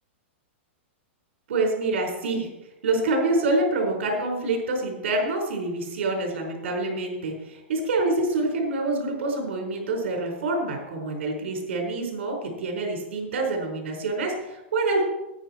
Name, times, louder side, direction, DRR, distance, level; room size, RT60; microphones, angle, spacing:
voice 1, 1.5-2.5 2.8-15.0, right 2 dB, 75° right, 1 dB, 4.5 m, -26 dB
19.0 x 9.2 x 4.4 m, 0.97 s
supercardioid pair, 160°, 7 cm